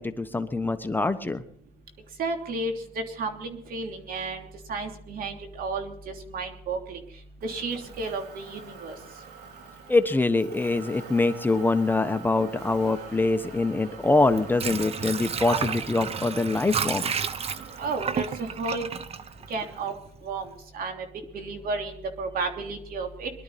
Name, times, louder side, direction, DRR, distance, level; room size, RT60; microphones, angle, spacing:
voice 1, 0.0-1.4 9.9-17.2, left 3 dB, 10° left, 8 dB, 1.0 m, -24 dB
voice 2, 2.2-7.0 7.4-9.0 17.8-18.9 19.5-19.9 20.2-21.0 21.3-23.3, right 3 dB, 60° right, 4 dB, 3.1 m, -32 dB
Motor vehicle (road), 7.4-19.9, right 4 dB, 80° right, 2.8 m, -45 dB
Water / Sink (filling or washing), 14.2-20.1 20.4-20.5, right 6 dB, 35° right, 0.9 m, -31 dB
22.5 x 12.0 x 4.2 m, 0.66 s
cardioid pair, 110°, 17 cm